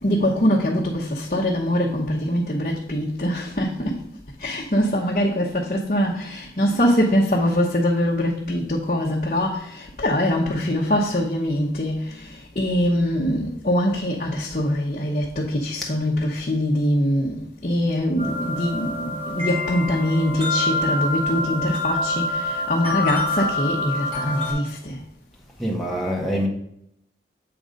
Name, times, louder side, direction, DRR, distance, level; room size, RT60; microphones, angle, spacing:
voice 1, 0.0-4.1 4.4-25.0, equal, 45° left, 0.9 m, -23 dB
sound 1, 18.2-24.5, left 2 dB, 30° right, 2.2 m, -26 dB
voice 2, 25.6-26.5, equal, ahead, 1.4 m, -25 dB
7.8 x 3.8 x 5.2 m
head